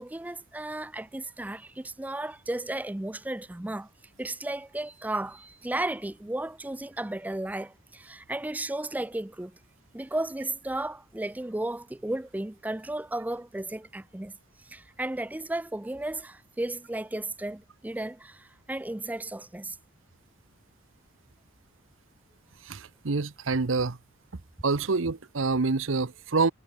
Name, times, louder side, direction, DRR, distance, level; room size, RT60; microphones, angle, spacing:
voice 1, 0.0-3.9 4.2-9.5 9.9-14.3 14.6-19.8, right 1 dB, 10° right, 0.3 m, -34 dB
voice 2, 22.6-24.0 24.6-26.5, right 4 dB, 90° right, 0.9 m, -27 dB
head